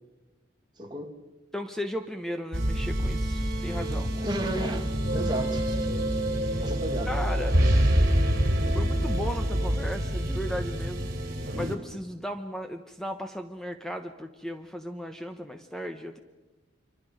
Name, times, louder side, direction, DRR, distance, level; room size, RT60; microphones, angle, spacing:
voice 1, 0.8-1.1 4.1-5.9 6.6-7.1, right 1 dB, 25° right, 2.4 m, -33 dB
voice 2, 1.5-4.1 6.5-6.6 7.1-7.7 8.7-11.1 11.5-16.2, equal, 5° left, 1.0 m, -36 dB
sound 1, 2.5-11.7, equal, 50° right, 3.4 m, -26 dB
27.0 x 25.0 x 5.1 m
head